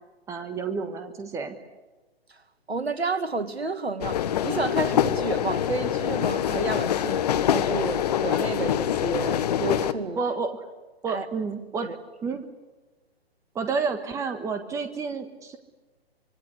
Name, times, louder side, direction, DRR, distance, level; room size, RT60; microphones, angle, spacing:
voice 1, 0.3-1.6 10.1-10.7 11.0-11.9 12.2-12.4 13.5-15.6, right 5 dB, 10° right, 1.5 m, -30 dB
voice 2, 2.7-10.2 11.1-11.3 11.8-12.0, right 3 dB, 80° right, 2.1 m, -30 dB
sound 1, 4.0-9.9, left 10 dB, 40° left, 1.3 m, -25 dB
25.5 x 22.0 x 9.7 m
figure-of-eight pair, 130°, 31 cm